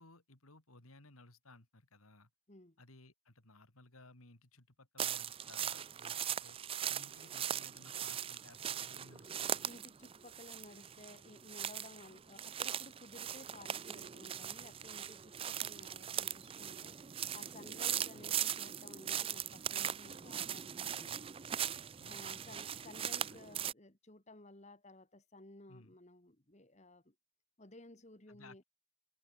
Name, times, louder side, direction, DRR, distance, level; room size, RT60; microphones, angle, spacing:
voice 1, 0.0-2.3 2.8-6.6 6.9-9.7 15.8-16.0 18.1-18.3 22.0-22.6 23.3-23.4 25.7-26.0 28.3-28.6, left 2 dB, 85° left, 3.8 m, -60 dB
voice 2, 2.5-2.8 9.3-21.3 22.1-27.2 27.6-28.6, left 2 dB, 30° left, 1.8 m, -56 dB
sound 1, 5.0-23.7, right 9 dB, 25° right, 0.4 m, -40 dB
head